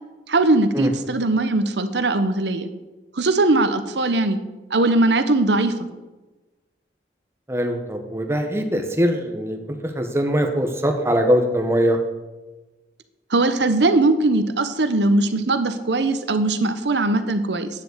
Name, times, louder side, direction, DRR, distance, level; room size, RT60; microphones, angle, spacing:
voice 1, 0.3-2.7 3.1-4.4 4.7-5.8 13.3-17.7, right 2 dB, 85° right, 10 dB, 1.1 m, -20 dB
voice 2, 7.5-9.6 9.8-12.0, equal, 15° right, 4 dB, 1.2 m, -21 dB
9.6 x 7.4 x 8.1 m, 1.1 s
head